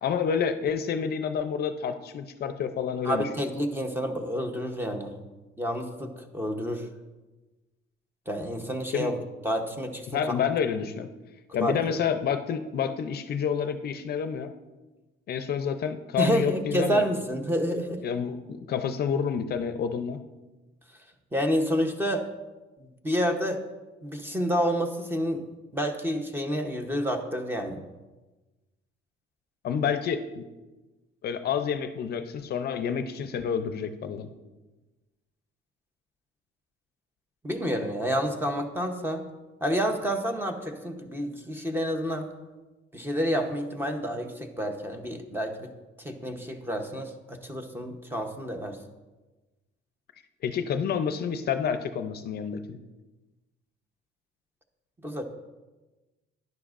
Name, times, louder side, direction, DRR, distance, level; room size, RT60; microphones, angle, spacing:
voice 1, 0.0-3.3 8.9-9.1 10.1-11.1 11.5-14.5 15.3-17.0 18.0-20.2 29.6-30.4 31.2-34.3 50.4-52.8, left 7 dB, 50° left, 9 dB, 0.6 m, -29 dB
voice 2, 3.0-5.2 5.6-6.9 8.3-9.2 9.4-10.2 11.6-11.8 16.2-18.0 21.3-22.3 23.0-23.6 24.0-25.4 25.7-27.8 37.4-39.2 39.6-42.3 42.9-45.7 46.0-48.8 55.0-55.2, equal, 10° right, 5 dB, 0.9 m, -29 dB
11.5 x 10.5 x 2.5 m, 1.2 s
cardioid pair, 130°, 21 cm